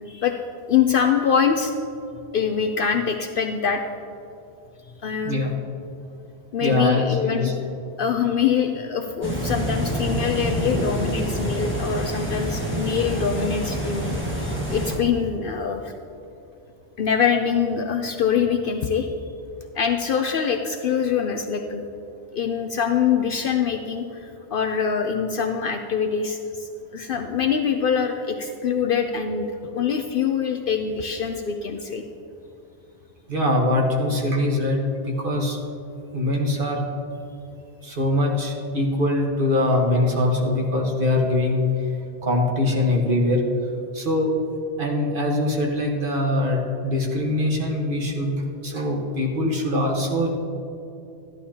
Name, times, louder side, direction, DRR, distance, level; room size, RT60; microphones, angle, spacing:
voice 1, 0.1-0.4 0.7-1.7 2.3-3.8 5.0-5.5 6.5-7.5 8.0-14.2 14.4-15.9 17.0-19.1 19.7-21.8 22.3-32.0, left 7 dB, 60° left, 5 dB, 0.7 m, -24 dB
voice 2, 6.6-7.5 33.3-35.6 36.1-36.8 37.8-41.7 42.2-43.4 43.9-44.3 44.8-50.4, left 1 dB, 50° right, 0 dB, 1.5 m, -23 dB
sound 1, 9.2-15.0, equal, 10° right, 1.5 m, -27 dB
13.0 x 11.0 x 2.8 m, 2.7 s
omnidirectional pair, 1.1 m